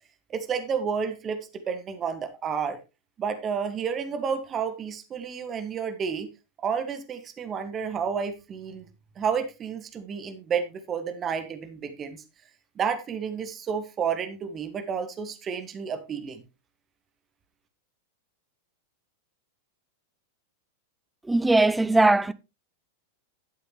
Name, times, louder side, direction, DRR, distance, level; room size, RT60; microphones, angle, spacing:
voice 1, 0.3-1.4 1.7-2.8 3.2-6.3 6.6-8.8 9.2-12.2 12.8-16.4, right 6 dB, 25° right, 1.7 m, -30 dB
voice 2, 21.3-22.3, right 2 dB, 5° right, 0.6 m, -20 dB
12.0 x 8.8 x 3.1 m
figure-of-eight pair, 90°, 0 cm